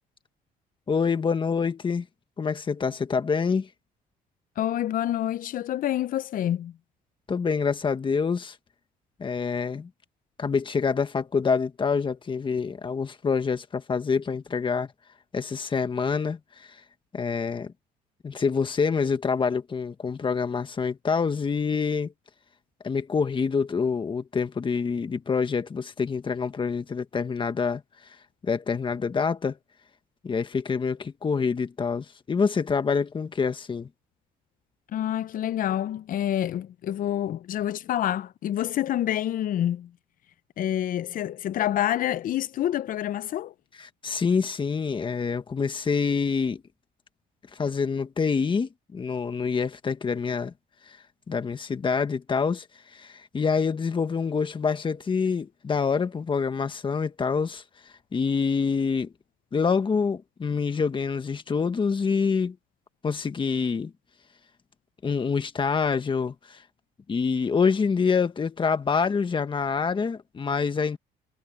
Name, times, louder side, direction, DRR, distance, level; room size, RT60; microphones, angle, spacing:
voice 1, 0.9-2.1 2.4-3.7 7.3-8.6 9.2-9.9 10.4-14.9 15.3-16.8 17.1-17.7 18.2-22.1 22.8-27.8 28.4-29.6 30.2-33.9 43.8-46.6 47.5-50.5 50.9-51.0 51.3-52.7 52.9-57.6 58.1-59.1 59.5-62.6 63.0-63.9 65.0-66.6 67.1-71.0, left 5 dB, 30° left, 1.6 m, -26 dB
voice 2, 4.6-6.7 34.9-39.9 40.6-43.5, left 11 dB, 55° left, 0.7 m, -27 dB
cardioid pair, 110°, 17 cm